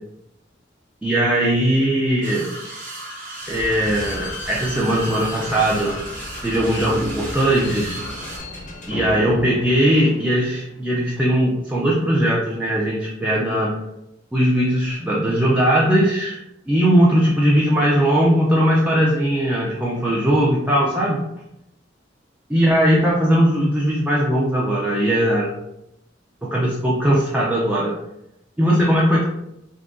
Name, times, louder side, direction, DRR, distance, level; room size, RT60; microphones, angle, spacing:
voice 1, 1.0-2.5 3.5-6.0 6.4-8.0 8.9-13.7 14.3-16.4 16.7-21.2 22.5-25.5 26.5-27.9 28.6-29.2, equal, 5° right, -5 dB, 0.4 m, -19 dB
sound 1, 2.2-8.4, right 1 dB, 45° right, 0.8 m, -35 dB
Slam / Squeak, 3.4-10.7, left 1 dB, 45° left, 0.6 m, -34 dB
3.6 x 2.7 x 2.5 m, 0.86 s
head